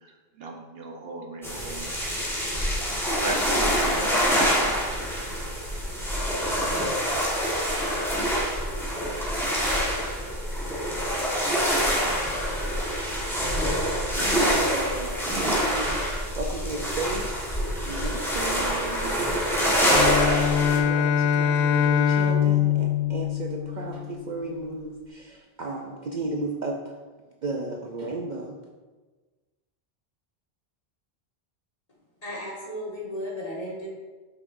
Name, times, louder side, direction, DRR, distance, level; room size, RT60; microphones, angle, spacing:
voice 1, 0.4-2.1 3.2-4.2 4.6-4.7, right 2 dB, 70° right, 1 dB, 1.1 m, -37 dB
sound 1, 1.4-20.8, equal, ahead, 1.3 m, -26 dB
voice 2, 14.1-19.5 20.5-26.9 27.4-28.6, right 2 dB, 55° right, 0 dB, 0.6 m, -35 dB
Bowed string instrument, 19.8-24.2, left 8 dB, 70° left, 0.8 m, -23 dB
voice 3, 32.2-33.9, left 1 dB, 35° left, -6 dB, 1.9 m, -34 dB
7.7 x 5.9 x 2.6 m, 1.3 s
omnidirectional pair, 1.1 m